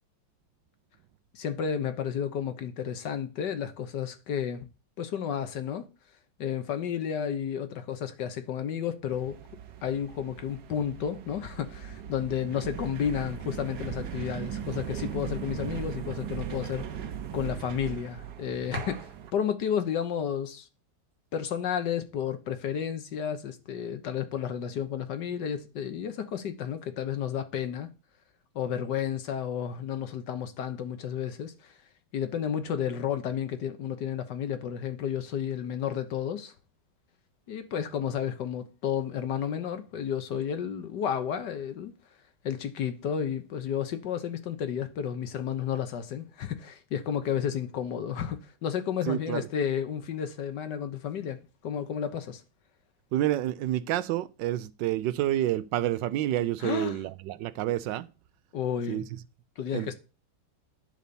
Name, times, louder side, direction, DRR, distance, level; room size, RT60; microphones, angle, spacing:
voice 1, 1.3-4.7 5.0-5.8 6.4-9.4 9.8-16.8 17.3-20.7 21.3-27.9 28.5-31.7 32.1-36.5 37.5-41.9 42.4-52.4 56.6-57.0 58.5-59.1 59.6-59.9, left 8 dB, 75° left, 1.6 m, -32 dB
sound 1, 9.1-19.3, right 9 dB, 65° right, 1.3 m, -38 dB
voice 2, 49.1-49.5 53.1-58.1 58.9-59.0 59.7-59.9, right 13 dB, 85° right, 1.3 m, -29 dB
10.0 x 4.0 x 6.9 m
omnidirectional pair, 1.9 m